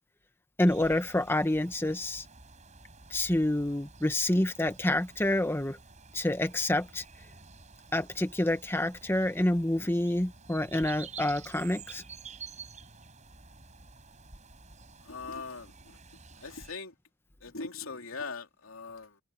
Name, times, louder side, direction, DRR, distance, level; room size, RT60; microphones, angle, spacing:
voice 1, 0.6-2.2 3.1-5.8 6.1-7.0 7.9-12.0, left 1 dB, 10° left, 0.9 m, -28 dB
sound 1, 0.7-16.7, right 5 dB, 35° right, 7.5 m, -50 dB
voice 2, 15.0-16.0 16.4-16.9 17.4-19.2, left 4 dB, 80° left, 3.2 m, -41 dB
head